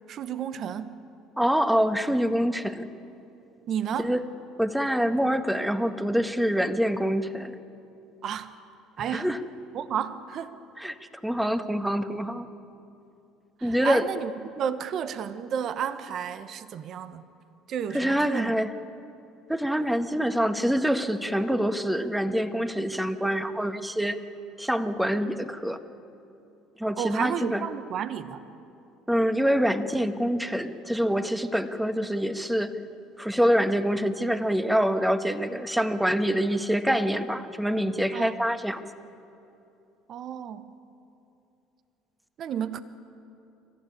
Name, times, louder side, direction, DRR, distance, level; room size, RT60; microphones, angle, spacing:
voice 1, 0.1-1.0 3.7-4.1 8.2-8.5 9.0-9.3 9.7-10.6 13.6-17.2 17.7-18.5 27.0-28.4 38.1-38.4 40.1-40.6 42.4-42.8, right 8 dB, 50° right, 12 dB, 1.1 m, -32 dB
voice 2, 1.4-2.9 4.0-4.2 4.6-7.6 9.1-9.4 10.8-11.0 11.2-12.4 13.6-14.0 17.9-18.7 19.5-24.2 24.6-25.8 26.8-27.6 29.1-32.8 33.2-38.8, equal, 5° right, 9 dB, 1.6 m, -25 dB
26.0 x 15.0 x 9.5 m, 2.7 s
hypercardioid pair, 65°, 0 cm